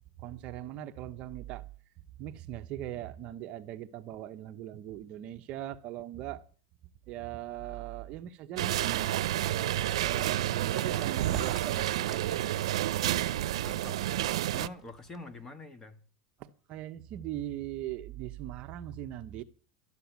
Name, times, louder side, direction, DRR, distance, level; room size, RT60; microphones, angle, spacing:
voice 1, 0.2-1.6 2.2-6.4 7.1-9.1 9.4-11.9 12.3-12.6 16.4-19.4, right 12 dB, 40° right, 1.0 m, -40 dB
sound 1, 8.6-14.7, right 13 dB, 90° right, 0.6 m, -30 dB
sound 2, 10.6-15.4, right 6 dB, 10° right, 2.2 m, -46 dB
voice 2, 13.6-16.0, left 2 dB, 15° left, 1.6 m, -46 dB
13.0 x 9.9 x 7.2 m
supercardioid pair, 150°, 3 cm